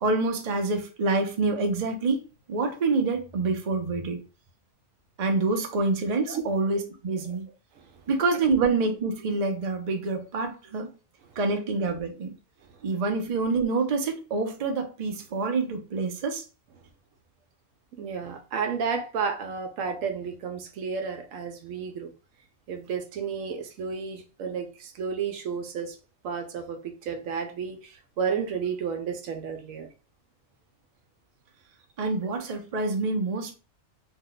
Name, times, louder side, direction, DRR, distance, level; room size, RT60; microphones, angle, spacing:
voice 1, 0.0-2.2 2.5-4.2 5.2-7.5 8.1-10.9 11.4-12.3 12.8-16.4 32.0-33.5, right 3 dB, 50° right, 0.5 m, -26 dB
voice 2, 7.8-8.1 12.6-12.7 18.0-22.1 22.7-26.0 26.2-29.9, right 6 dB, 75° right, 1.0 m, -32 dB
2.8 x 2.2 x 3.8 m
omnidirectional pair, 1.4 m